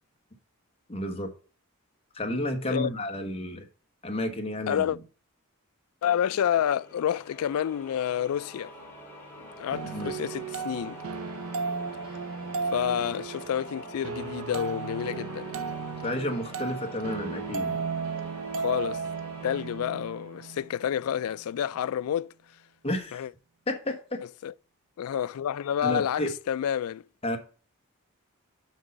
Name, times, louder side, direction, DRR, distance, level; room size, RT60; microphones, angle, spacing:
voice 1, 0.9-1.3 2.1-3.7 4.0-5.0 9.9-10.1 16.0-17.8 22.8-23.3 23.7-24.2 25.8-26.3 27.2-27.4, left 1 dB, 25° left, 1.1 m, -31 dB
voice 2, 4.7-5.0 6.0-8.7 9.4-11.0 12.7-15.6 18.6-19.0 19.4-22.3 23.1-23.3 24.4-24.5 25.0-27.0, left 9 dB, 75° left, 0.3 m, -29 dB
sound 1, 6.6-21.2, left 1 dB, 10° left, 2.0 m, -47 dB
sound 2, 9.7-20.7, right 5 dB, 70° right, 0.6 m, -35 dB
6.3 x 5.4 x 5.2 m
head